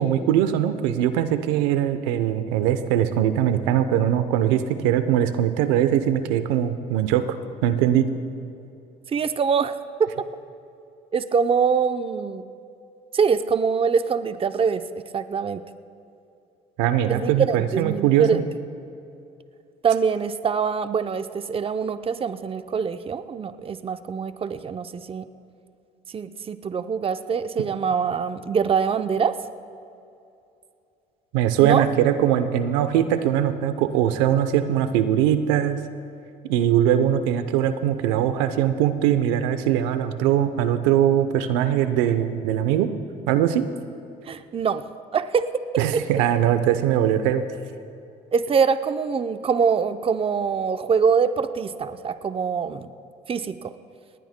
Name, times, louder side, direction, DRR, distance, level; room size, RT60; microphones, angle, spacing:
voice 1, 0.0-7.4 7.6-8.1 16.8-18.4 31.3-35.8 36.5-42.9 43.3-43.7 45.8-47.4, right 10 dB, 90° right, 11 dB, 0.7 m, -21 dB
voice 2, 9.1-10.2 11.1-12.4 13.1-14.8 15.1-15.6 17.1-18.4 19.8-25.2 26.1-29.4 31.6-31.9 44.3-44.8 45.1-45.5 48.3-52.9 53.3-53.7, right 6 dB, 30° right, 10 dB, 0.6 m, -24 dB
19.0 x 19.0 x 2.2 m, 2.6 s
supercardioid pair, 75°, 18 cm